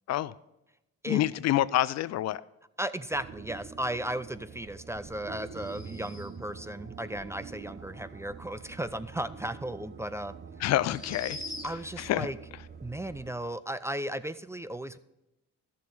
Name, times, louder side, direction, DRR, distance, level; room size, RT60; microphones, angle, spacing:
voice 1, 1.1-2.4 10.6-11.4 12.0-12.3, left 13 dB, 60° left, 0.4 m, -27 dB
voice 2, 2.8-10.3 11.6-12.4 12.8-15.0, right 1 dB, 10° right, 0.4 m, -35 dB
sound 1, 3.1-13.3, right 6 dB, 35° right, 0.8 m, -46 dB
sound 2, 5.4-6.5 9.6-9.7 10.8-12.0, left 2 dB, 10° left, 1.3 m, -43 dB
12.0 x 7.5 x 5.5 m
cardioid pair, 85°, 30 cm